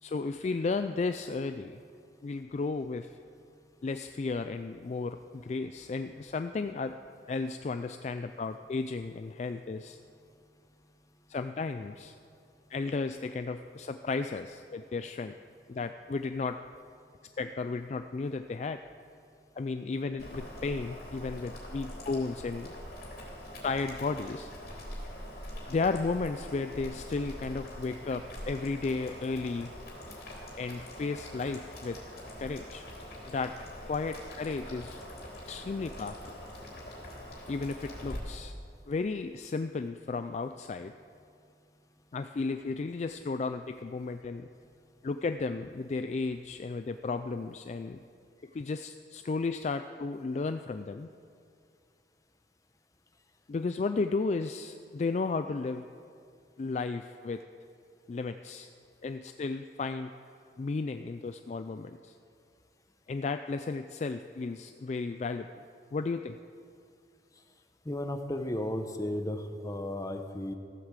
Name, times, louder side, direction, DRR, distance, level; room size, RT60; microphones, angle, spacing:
voice 1, 0.0-1.8 2.2-3.2 3.8-7.0 7.3-10.0 11.3-12.2 12.7-15.3 15.7-16.6 17.4-18.8 19.6-22.7 23.6-24.5 25.7-29.7 30.5-32.0 32.4-32.9 33.3-33.6 33.9-35.0 35.5-36.2 37.5-38.5 38.9-40.9 42.1-44.5 45.0-48.0 48.5-51.1 53.5-55.9 56.6-57.4 58.1-58.7 59.0-60.1 60.6-62.1 63.1-65.5 65.9-66.4, left 4 dB, 40° left, 9 dB, 0.3 m, -34 dB
Boiling, 20.2-38.2, left 1 dB, 55° left, 3.5 m, -44 dB
voice 2, 67.9-70.5, left 1 dB, 20° left, 6 dB, 0.8 m, -34 dB
15.0 x 8.1 x 7.3 m, 2.4 s
head